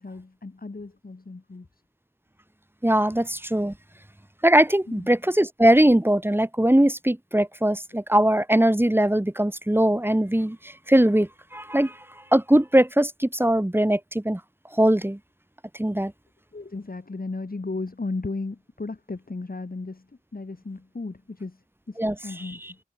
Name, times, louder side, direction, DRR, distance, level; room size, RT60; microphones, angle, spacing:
voice 1, 0.0-1.8 4.9-5.1 16.5-22.8, left 3 dB, 70° left, 5.8 m, -35 dB
voice 2, 2.8-3.7 4.4-12.0 12.3-14.4 14.8-15.2 15.8-16.1 22.0-22.1, right 1 dB, 15° right, 1.7 m, -21 dB
wide cardioid pair, 60°, 16 cm